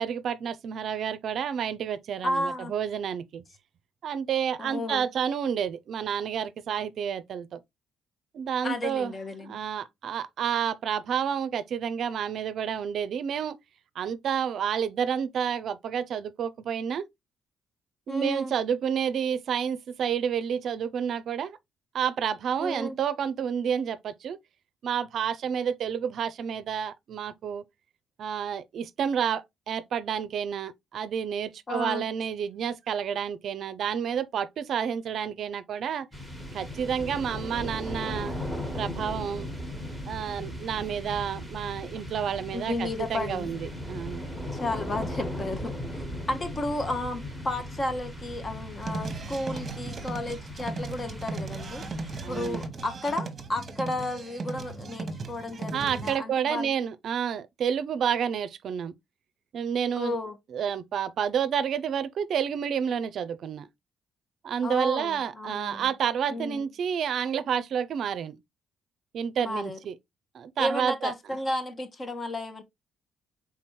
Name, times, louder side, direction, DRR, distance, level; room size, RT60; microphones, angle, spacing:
voice 1, 0.0-3.4 4.0-7.6 8.3-9.1 9.4-13.6 14.0-17.0 18.1-21.6 21.9-24.4 24.8-27.6 28.2-36.1 36.5-38.4 38.7-39.5 40.1-44.3 52.2-52.6 55.7-58.9 59.5-60.1 60.5-63.7 64.4-68.4 69.1-69.9 70.3-71.1, right 8 dB, 65° right, 0.5 m, -30 dB
voice 2, 2.2-2.7 4.6-5.1 8.6-9.6 18.1-18.5 22.6-23.0 31.7-32.1 41.8-42.0 42.5-43.5 44.5-51.9 52.3-56.7 60.0-60.4 64.6-65.9 66.3-66.7 69.4-69.8 70.6-72.6, left 1 dB, 30° left, 1.1 m, -33 dB
sound 1, 36.1-53.1, equal, 10° left, 1.6 m, -38 dB
sound 2, 48.8-56.2, right 3 dB, 40° right, 1.0 m, -37 dB
4.2 x 3.8 x 3.0 m
cardioid pair, 90°, 0 cm